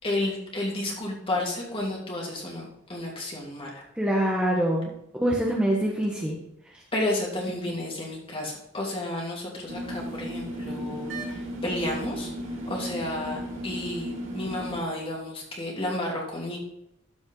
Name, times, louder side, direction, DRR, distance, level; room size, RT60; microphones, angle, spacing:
voice 1, 0.0-3.8 6.9-12.3 12.7-16.6, left 1 dB, 30° left, -2 dB, 2.8 m, -32 dB
voice 2, 4.0-4.9 5.2-6.4, right 1 dB, 5° right, -3 dB, 1.2 m, -24 dB
sound 1, 9.7-14.8, equal, 85° right, 2.2 m, -35 dB
13.0 x 5.2 x 4.0 m, 0.80 s
head